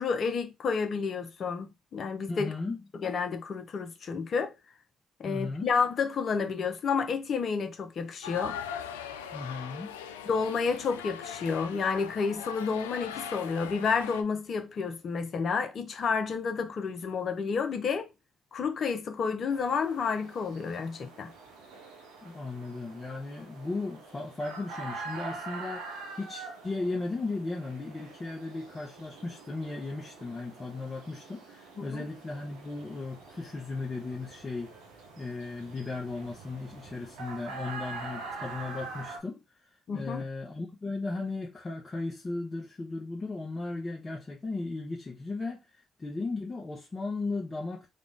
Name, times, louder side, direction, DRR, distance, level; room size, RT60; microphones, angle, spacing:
voice 1, 0.0-2.5 3.0-4.5 5.2-8.6 10.2-18.1 18.5-21.3 31.8-32.1 39.9-40.2, left 5 dB, 55° left, 0.8 m, -30 dB
voice 2, 2.3-2.8 5.2-5.7 9.3-9.9 22.2-34.7 35.2-47.9, left 3 dB, 30° left, 1.0 m, -36 dB
sound 1, 8.2-14.2, left 8 dB, 90° left, 0.3 m, -41 dB
sound 2, 19.5-39.2, right 3 dB, 75° right, 1.0 m, -45 dB
3.8 x 2.4 x 3.7 m
hypercardioid pair, 45°, 0 cm